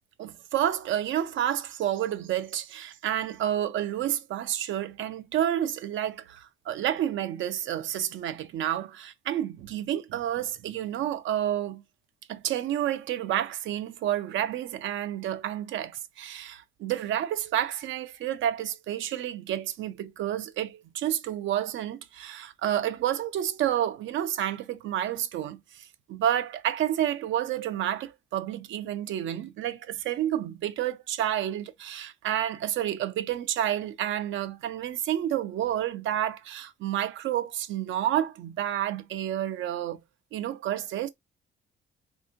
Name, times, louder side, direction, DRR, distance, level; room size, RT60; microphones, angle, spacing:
voice 1, 0.2-11.8 12.3-40.0 40.3-41.1, right 11 dB, 75° right, 0.5 m, -30 dB
3.5 x 2.7 x 2.6 m
cardioid pair, 90°, 20 cm